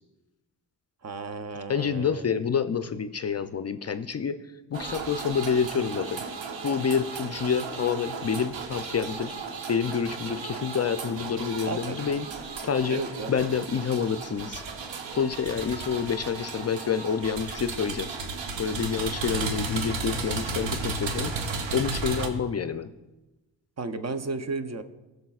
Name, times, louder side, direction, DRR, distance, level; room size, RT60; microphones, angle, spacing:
voice 1, 1.0-2.3 11.6-12.0 12.9-13.3 23.8-24.8, right 3 dB, 40° right, 9 dB, 0.7 m, -33 dB
voice 2, 1.7-4.3 4.7-6.2 6.6-9.3 9.7-12.3 12.6-13.0 13.3-14.6 15.1-18.1 18.6-22.9, left 6 dB, 35° left, 10 dB, 0.4 m, -28 dB
sound 1, 4.7-22.3, right 4 dB, 85° right, 1.0 m, -34 dB
Trumpet, 15.2-17.5, left 4 dB, 5° right, 1.4 m, -49 dB
15.5 x 6.6 x 2.4 m, 1.1 s
cardioid pair, 65°, 43 cm